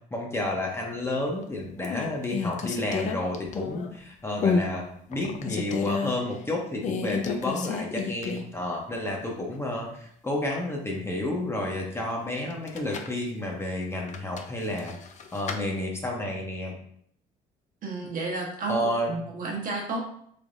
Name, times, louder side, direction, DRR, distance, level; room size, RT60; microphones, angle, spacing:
voice 1, 0.1-15.0 15.3-16.8 18.7-19.1, left 1 dB, 15° left, -1 dB, 0.7 m, -31 dB
sound 1, 1.1-1.4 1.8-4.0 4.4-4.7 5.1-6.1 6.8-8.6 8.9-9.0 12.5-13.2 14.1-15.6, left 5 dB, 45° left, 0.5 m, -30 dB
voice 2, 17.8-20.0, right 3 dB, 55° right, 0 dB, 1.0 m, -32 dB
3.4 x 3.3 x 2.6 m, 0.66 s
cardioid pair, 110°, 17 cm